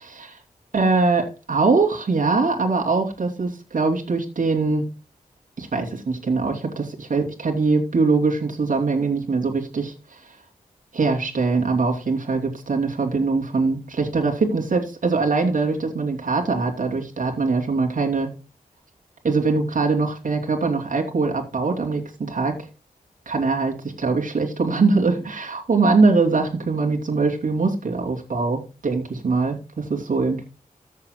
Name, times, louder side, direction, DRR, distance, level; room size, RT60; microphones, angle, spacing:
voice 1, 0.0-0.4 0.7-4.8 5.6-10.2 10.9-18.3 19.2-22.6 23.3-29.6 29.9-30.4, right 3 dB, 70° right, 1 dB, 2.9 m, -22 dB
14.5 x 7.5 x 2.2 m, 0.30 s
wide cardioid pair, 70°, 14 cm